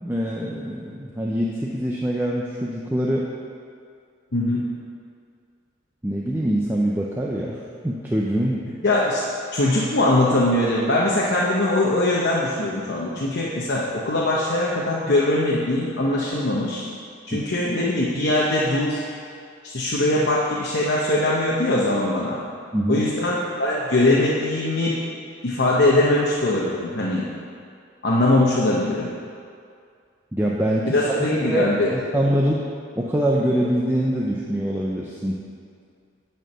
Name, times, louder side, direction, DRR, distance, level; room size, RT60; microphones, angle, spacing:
voice 1, 0.0-3.3 6.0-8.7 17.3-17.4 22.7-23.1 30.3-32.6 33.0-35.4, equal, 10° right, -3 dB, 0.5 m, -24 dB
voice 2, 4.3-4.6 8.8-9.2 9.5-16.8 17.3-19.0 19.6-22.4 22.9-25.0 25.4-27.2 28.0-29.1 30.9-31.9, left 1 dB, 65° left, -5 dB, 0.9 m, -21 dB
9.1 x 4.5 x 6.6 m, 2.3 s
head